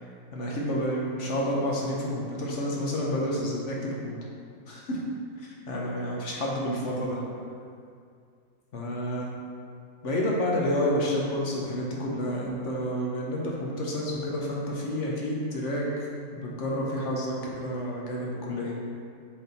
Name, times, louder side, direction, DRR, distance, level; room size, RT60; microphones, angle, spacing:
voice 1, 0.3-4.1 4.7-5.0 5.4-7.2 8.7-9.3 10.0-15.9 16.3-18.7, equal, 45° left, -3 dB, 1.2 m, -29 dB
6.8 x 4.1 x 4.4 m, 2.3 s
omnidirectional pair, 1.9 m